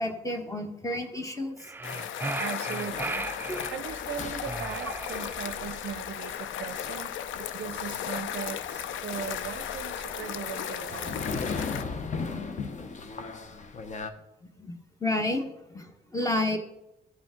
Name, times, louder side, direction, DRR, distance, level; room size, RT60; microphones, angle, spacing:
voice 1, 0.0-1.7 3.5-3.6 14.6-16.6, left 1 dB, 15° left, 5 dB, 1.3 m, -31 dB
sound 1, 1.6-3.8 4.4-5.7, right 3 dB, 10° right, 0.4 m, -36 dB
sound 2, 1.8-11.8, left 9 dB, 75° left, 0.5 m, -36 dB
voice 2, 2.4-3.3 3.7-11.3, right 9 dB, 65° right, 12 dB, 0.5 m, -39 dB
sound 3, 2.9-14.1, left 4 dB, 35° left, 0.8 m, -39 dB
14.5 x 5.1 x 3.7 m, 0.91 s
cardioid pair, 90°, 20 cm